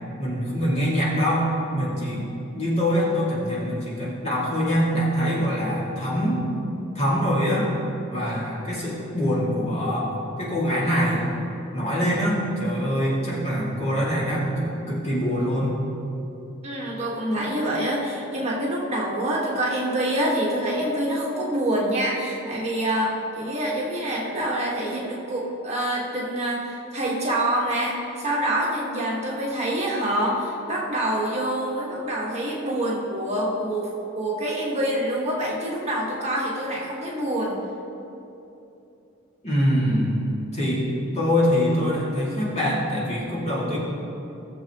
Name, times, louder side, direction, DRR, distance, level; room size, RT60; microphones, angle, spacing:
voice 1, 0.2-2.3 2.5-6.5 6.9-7.7 8.1-11.2 11.7-15.8 39.4-40.2 40.5-40.9 41.1-43.8, equal, 35° left, -7 dB, 2.4 m, -24 dB
voice 2, 16.6-37.6, right 1 dB, 30° right, -4 dB, 1.6 m, -26 dB
18.0 x 7.1 x 3.0 m, 2.9 s
head